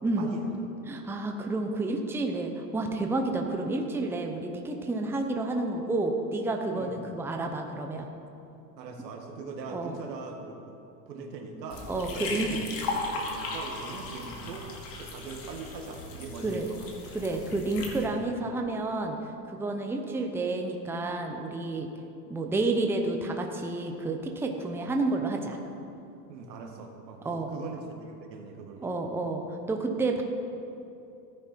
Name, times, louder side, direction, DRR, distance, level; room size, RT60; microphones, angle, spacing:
voice 1, 0.2-0.5 6.7-7.0 8.8-10.8 11.1-11.9 12.1-12.6 12.8-14.7 15.0-17.4 26.3-28.9, right 4 dB, 85° right, 3 dB, 2.1 m, -41 dB
voice 2, 0.9-8.1 9.7-9.9 11.9-12.5 16.4-16.7 17.1-19.2 19.5-21.9 22.3-25.6 27.2-27.5 28.8-29.4 29.7-30.2, right 2 dB, 5° right, 3 dB, 0.8 m, -30 dB
sound 1, 11.7-18.0, left 3 dB, 45° left, 2.6 m, -37 dB
15.0 x 9.7 x 4.5 m, 2.8 s
supercardioid pair, 125°, 49 cm